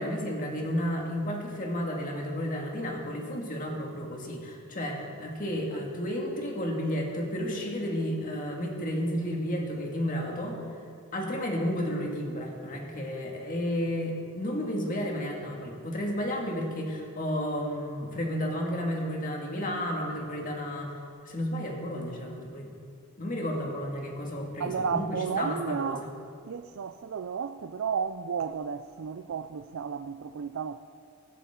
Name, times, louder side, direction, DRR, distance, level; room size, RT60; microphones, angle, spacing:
voice 1, 0.0-10.6 11.1-21.0 21.3-22.7 23.2-26.1, equal, 40° left, 2.0 m, -32 dB
voice 2, 24.6-26.0 26.5-30.8, right 6 dB, 70° right, 0.4 m, -32 dB
15.5 x 12.5 x 3.8 m
head